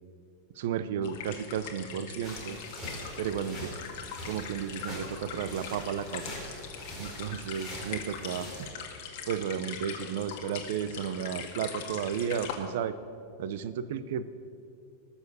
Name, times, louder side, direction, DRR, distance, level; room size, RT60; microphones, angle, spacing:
voice 1, 0.6-2.6 3.2-3.8 4.2-6.3 7.0-8.5 9.3-12.9 13.4-14.3, right 8 dB, 65° right, 14 dB, 0.7 m, -33 dB
sound 1, 1.0-12.5, left 7 dB, 55° left, 1.9 m, -42 dB
sound 2, 2.2-8.7, left 1 dB, 5° right, 4.1 m, -43 dB
19.0 x 7.1 x 6.9 m, 2.5 s
supercardioid pair, 165°, 0 cm